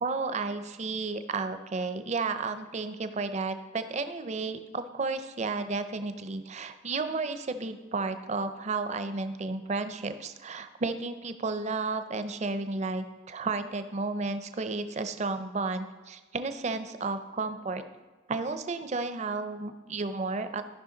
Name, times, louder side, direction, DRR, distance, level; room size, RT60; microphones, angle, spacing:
voice 1, 0.0-17.8 18.3-20.6, right 3 dB, 35° right, 10 dB, 0.5 m, -32 dB
14.0 x 5.5 x 3.8 m, 1.3 s
head